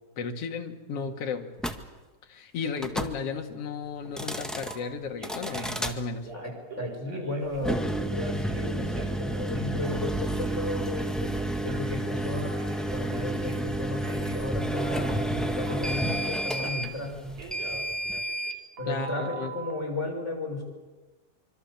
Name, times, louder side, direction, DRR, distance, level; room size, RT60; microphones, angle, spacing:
voice 1, 0.2-1.5 2.3-6.3 18.9-19.5, left 5 dB, 50° left, 3 dB, 2.9 m, -34 dB
sound 1, 1.6-1.8 2.8-3.1 4.0-4.7 5.2-5.9 7.5-18.6, right 1 dB, ahead, 0.6 m, -30 dB
Telephone, 4.7-4.8 5.2-5.8 6.2-7.6 8.1-10.6 10.9-13.7 14.0-14.4 15.7-17.0 17.4-19.7, right 4 dB, 75° right, 5.0 m, -45 dB
voice 2, 6.8-17.1 18.8-20.6, left 2 dB, 20° left, 0 dB, 6.8 m, -34 dB
25.5 x 25.5 x 7.3 m, 1.2 s
omnidirectional pair, 3.6 m